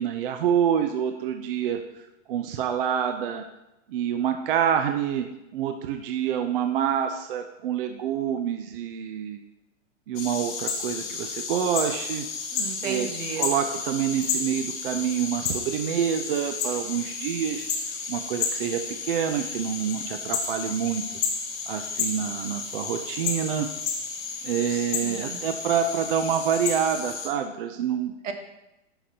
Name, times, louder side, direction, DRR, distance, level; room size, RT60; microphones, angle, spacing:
voice 1, 0.0-1.8 2.3-3.4 3.9-5.3 5.5-9.4 10.1-12.3 12.8-13.1 13.4-17.7 18.1-21.0 21.7-23.7 24.4-28.1, right 8 dB, 45° right, 6 dB, 0.5 m, -27 dB
sound 1, 10.2-27.3, left 5 dB, 40° left, 1.2 m, -32 dB
voice 2, 12.5-13.5 24.7-25.4 28.2-28.3, right 6 dB, 75° right, 4 dB, 1.4 m, -35 dB
9.4 x 5.9 x 2.8 m, 0.95 s
hypercardioid pair, 145°, 39 cm